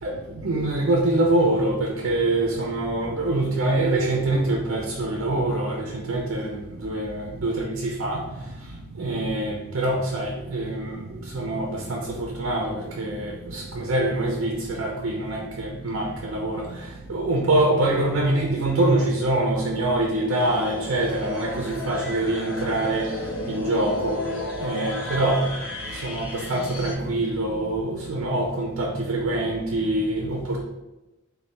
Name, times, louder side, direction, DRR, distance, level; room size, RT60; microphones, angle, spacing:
voice 1, 0.0-8.2 9.0-23.1 23.5-24.2 24.6-25.5 25.9-30.6, right 2 dB, 60° right, -1 dB, 0.5 m, -25 dB
sound 1, 20.3-26.9, left 1 dB, 65° left, 0.6 m, -33 dB
4.1 x 2.2 x 3.3 m, 1.0 s
head